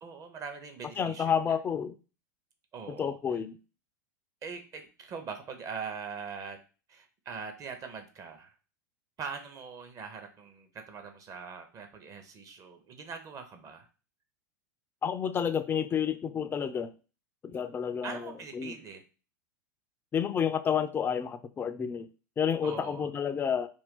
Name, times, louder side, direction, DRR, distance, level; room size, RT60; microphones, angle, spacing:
voice 1, 0.0-1.6 2.7-3.2 4.4-6.6 6.9-8.5 9.2-13.9 18.0-19.0 22.6-23.1, right 5 dB, 35° right, 6 dB, 0.7 m, -42 dB
voice 2, 1.0-1.9 2.9-3.6 15.0-16.9 17.4-18.7 20.1-22.1 22.4-23.7, left 7 dB, 20° left, 11 dB, 0.3 m, -30 dB
2.5 x 2.2 x 3.6 m, 0.34 s
hypercardioid pair, 95°, 10 cm